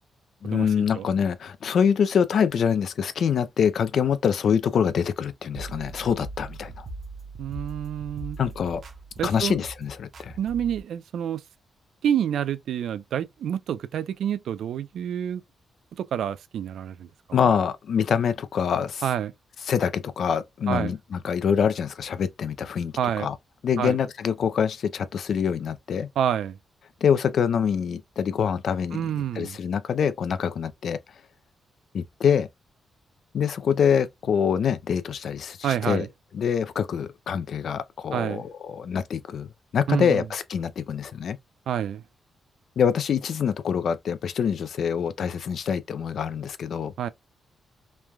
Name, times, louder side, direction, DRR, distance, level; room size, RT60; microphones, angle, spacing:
voice 1, 0.4-6.9 8.4-8.8 9.2-10.3 17.3-19.0 19.7-23.4 23.6-26.1 27.0-29.0 29.3-31.0 31.9-32.5 33.3-36.0 36.3-41.4 42.8-46.9, left 7 dB, 65° left, 0.3 m, -25 dB
sound 1, 5.5-10.8, right 3 dB, 55° right, 0.7 m, -40 dB
voice 2, 7.4-8.4 9.2-9.6 10.4-11.4 12.0-15.4 16.0-17.4 19.0-19.3 20.7-20.9 23.0-23.3 23.8-24.0 26.2-26.6 28.9-29.6 35.6-36.1 38.1-38.4 39.9-40.2 41.7-42.0 47.0-47.1, right 9 dB, 80° right, 0.3 m, -28 dB
3.1 x 2.2 x 2.2 m
cardioid pair, 120°, 0 cm